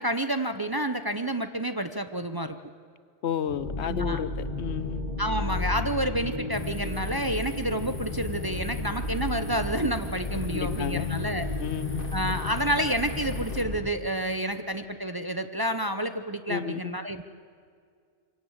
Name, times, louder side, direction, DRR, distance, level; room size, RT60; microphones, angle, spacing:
voice 1, 0.0-2.6 3.9-4.2 5.2-11.5 12.1-17.2, right 1 dB, 25° right, 8 dB, 0.6 m, -29 dB
voice 2, 3.2-4.3 4.6-5.0 10.5-11.2 11.6-12.0 16.5-16.9, left 8 dB, 75° left, 16 dB, 1.0 m, -32 dB
sound 1, 3.5-13.8, left 2 dB, 50° left, 2.8 m, -33 dB
sound 2, 6.5-13.6, left 1 dB, 10° left, 0.9 m, -44 dB
23.5 x 17.0 x 8.0 m, 2.1 s
omnidirectional pair, 1.1 m